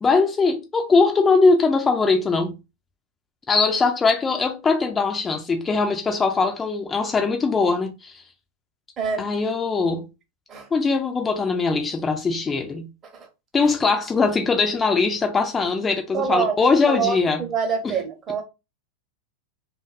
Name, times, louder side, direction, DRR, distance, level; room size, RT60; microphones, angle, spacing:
voice 1, 0.0-2.5 3.5-8.2 9.2-10.1 10.7-12.9 13.5-17.4 17.8-17.9, left 4 dB, 15° left, 0.3 m, -21 dB
voice 2, 9.0-9.3 10.5-10.7 13.1-13.3 16.1-16.6 16.9-18.4, right 6 dB, 30° right, 0.7 m, -25 dB
2.5 x 2.2 x 2.2 m
figure-of-eight pair, 90°, 0 cm